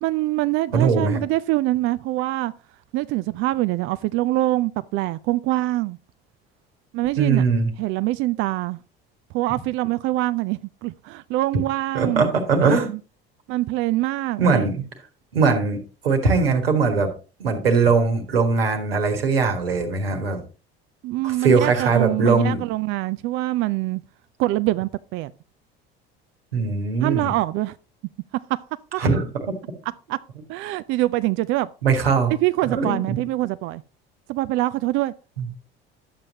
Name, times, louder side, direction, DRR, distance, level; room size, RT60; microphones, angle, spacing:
voice 1, 0.0-2.5 2.9-6.0 6.9-7.5 7.8-8.8 9.3-12.3 12.6-13.0 13.5-14.7 21.0-24.0 24.4-25.3 27.0-27.8 28.9-29.0 30.1-30.2 30.5-31.7 32.4-33.8 34.3-35.1, right 17 dB, 45° right, 0.4 m, -24 dB
voice 2, 0.7-1.2 7.2-7.7 11.9-12.9 14.4-14.8 15.3-17.1 17.4-20.4 21.2-22.6 26.5-27.3 29.0-29.2 31.8-32.3 32.7-33.2 35.4-35.5, right 4 dB, 80° right, 1.5 m, -20 dB
11.0 x 7.5 x 2.8 m
figure-of-eight pair, 60°, 29 cm